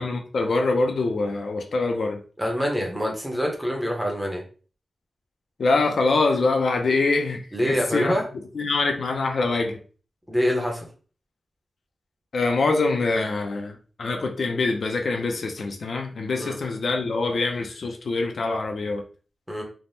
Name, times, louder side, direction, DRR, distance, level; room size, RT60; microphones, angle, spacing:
voice 1, 0.0-2.2 5.6-8.1 8.5-9.8 12.3-19.0, left 3 dB, 55° left, 3 dB, 0.4 m, -24 dB
voice 2, 2.4-4.4 7.5-8.2 10.3-10.9 16.4-16.6 19.5-19.6, equal, 5° right, 0 dB, 0.7 m, -25 dB
3.3 x 2.0 x 2.6 m, 0.38 s
wide cardioid pair, 170°, 0 cm